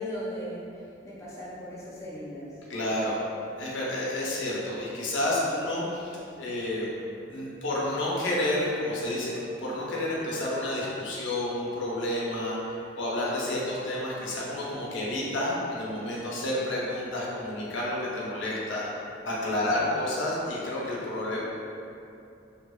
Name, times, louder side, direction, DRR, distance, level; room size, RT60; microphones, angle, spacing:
voice 1, 0.0-2.6 19.7-20.0, equal, 15° left, -7 dB, 0.4 m, -38 dB
voice 2, 2.7-3.2 3.6-7.0 7.3-18.9 19.3-21.4, left 1 dB, 85° left, -5 dB, 0.5 m, -30 dB
2.7 x 2.0 x 2.2 m, 2.6 s
head